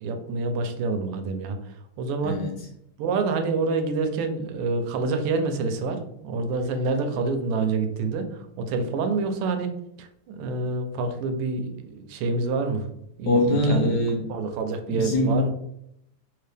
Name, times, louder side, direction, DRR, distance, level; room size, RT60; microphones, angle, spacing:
voice 1, 0.0-2.4 3.0-9.7 10.0-12.9 13.2-14.0 14.3-15.5, right 3 dB, 90° right, 6 dB, 1.6 m, -27 dB
voice 2, 2.2-2.5 13.3-14.3 14.9-15.5, left 1 dB, 70° left, 0 dB, 1.1 m, -23 dB
3.8 x 2.8 x 3.3 m, 0.76 s
omnidirectional pair, 2.4 m